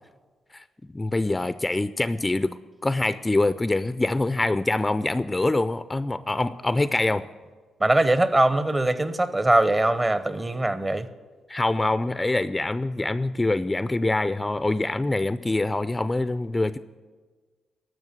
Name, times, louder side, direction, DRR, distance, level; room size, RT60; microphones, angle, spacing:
voice 1, 0.9-7.3 11.5-16.8, left 2 dB, 20° left, 0.3 m, -25 dB
voice 2, 7.8-11.1, right 2 dB, 25° right, 0.7 m, -21 dB
13.0 x 6.2 x 7.8 m
cardioid pair, 70°, 0 cm